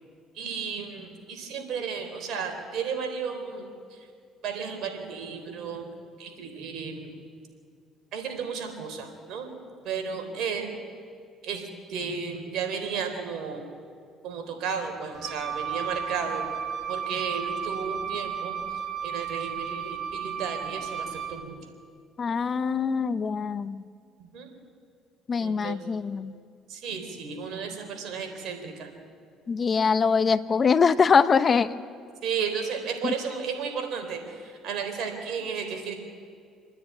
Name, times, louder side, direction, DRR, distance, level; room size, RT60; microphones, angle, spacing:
voice 1, 0.3-4.1 4.4-5.9 6.2-7.1 8.1-9.5 9.8-10.8 11.4-13.6 14.2-16.5 16.9-21.6 24.2-24.5 25.4-25.9 26.7-28.9 32.2-35.9, right 6 dB, 70° right, 4 dB, 3.8 m, -33 dB
Wind instrument woodwind instrument, 15.1-21.5, right 7 dB, 50° right, 1.4 m, -33 dB
voice 2, 22.2-23.8 25.3-26.3 29.5-31.7 33.0-33.1, left 5 dB, 40° left, 14 dB, 0.7 m, -23 dB
27.5 x 10.0 x 9.7 m, 2.2 s
supercardioid pair, 75°, 0 cm